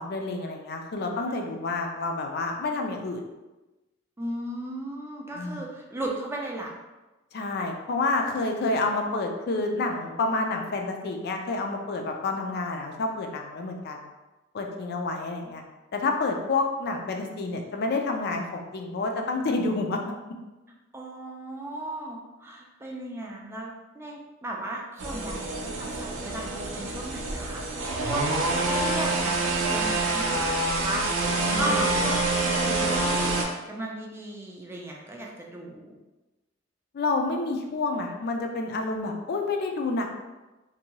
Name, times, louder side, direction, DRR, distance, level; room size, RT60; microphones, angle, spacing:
voice 1, 0.0-3.3 5.3-5.7 7.3-14.0 14.5-15.6 15.9-20.0 31.4-32.1 36.9-40.1, left 3 dB, 55° left, 3 dB, 0.4 m, -29 dB
voice 2, 4.2-6.7 20.9-28.4 28.7-36.0, right 1 dB, 15° right, -1 dB, 0.4 m, -36 dB
sound 1, 25.0-33.4, right 2 dB, 90° right, 0.5 m, -26 dB
2.7 x 2.2 x 2.8 m, 1.1 s
head